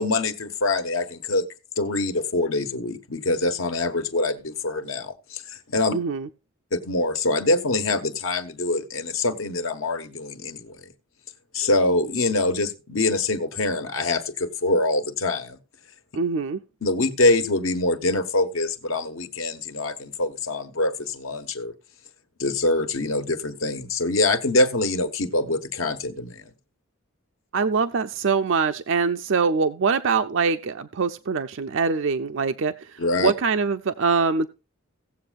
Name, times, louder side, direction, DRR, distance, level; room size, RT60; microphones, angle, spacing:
voice 1, 0.0-1.4 1.8-5.9 6.7-10.8 11.5-15.6 16.8-21.7 22.4-26.4 33.0-33.3, left 2 dB, 80° left, 1.4 m, -24 dB
voice 2, 5.9-6.3 16.1-16.6 27.5-34.5, right 5 dB, 65° right, 0.5 m, -23 dB
17.5 x 7.5 x 2.4 m
head